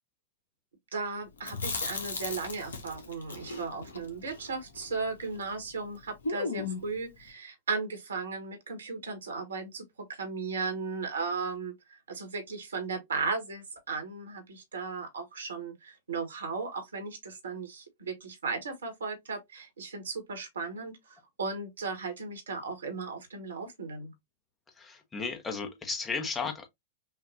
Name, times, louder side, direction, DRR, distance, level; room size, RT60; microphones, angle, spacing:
voice 1, 0.9-24.1, right 4 dB, 70° right, 1.6 m, -36 dB
Chewing mastication, 1.4-5.6 5.8-5.9 6.2-7.0, left 4 dB, 70° left, 1.1 m, -36 dB
voice 2, 24.8-26.7, left 4 dB, 15° left, 1.2 m, -34 dB
5.8 x 2.5 x 2.7 m
figure-of-eight pair, 95°, 0 cm